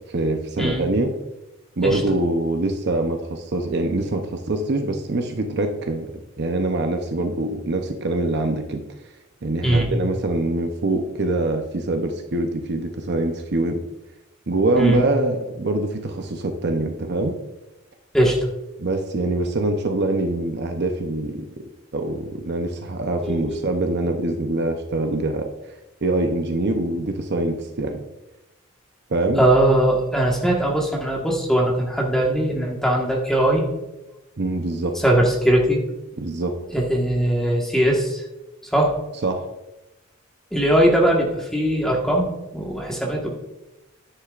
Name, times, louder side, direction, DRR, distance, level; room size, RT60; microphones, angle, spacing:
voice 1, 0.1-1.1 1.8-6.1 6.4-8.8 9.4-13.8 14.5-17.3 18.8-21.4 21.9-25.5 26.0-28.0 29.1-29.4 34.4-35.0 36.2-36.5 39.2-39.4, right 2 dB, 50° right, 5 dB, 0.7 m, -24 dB
voice 2, 23.2-23.6 29.4-33.6 34.9-35.8 36.7-38.2 38.7-38.9 40.5-43.3, right 1 dB, ahead, -2 dB, 1.4 m, -20 dB
9.9 x 9.9 x 2.5 m, 0.97 s
head